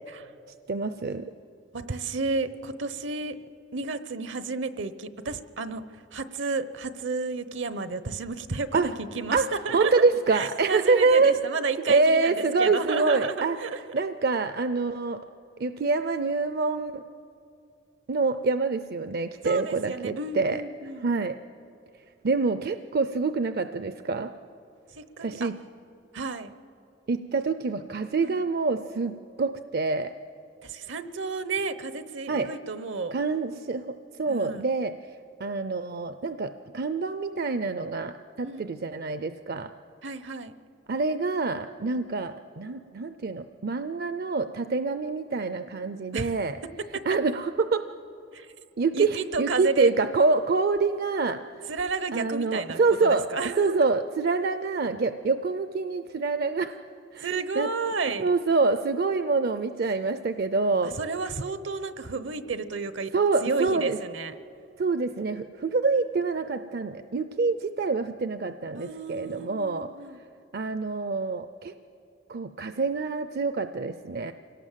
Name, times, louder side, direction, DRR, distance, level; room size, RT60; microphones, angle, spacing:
voice 1, 0.7-1.3 8.7-8.9 9.3-9.5 9.7-11.3 11.9-13.6 13.9-15.2 15.6-17.0 18.1-20.6 21.0-21.4 22.2-24.3 25.2-25.5 27.1-30.1 32.3-32.5 33.1-34.9 35.4-39.7 40.9-46.6 47.1-47.8 48.8-51.7 52.1-53.3 53.6-56.8 57.1-57.3 57.5-57.7 58.2-60.9 63.1-64.0 64.8-69.9 70.5-71.7 72.3-74.3, right 4 dB, 55° right, 11 dB, 0.5 m, -26 dB
voice 2, 1.7-3.4 3.7-9.9 10.3-13.8 19.4-21.1 24.9-25.5 26.1-26.6 28.2-28.4 30.6-33.1 34.3-34.7 38.4-38.7 40.0-40.5 46.1-46.4 46.9-47.0 48.3-48.5 48.9-49.9 51.7-53.9 57.2-58.3 60.8-63.1 63.4-64.3 68.8-70.2, right 4 dB, 75° right, 13 dB, 0.9 m, -32 dB
25.5 x 18.0 x 7.5 m, 2.7 s
head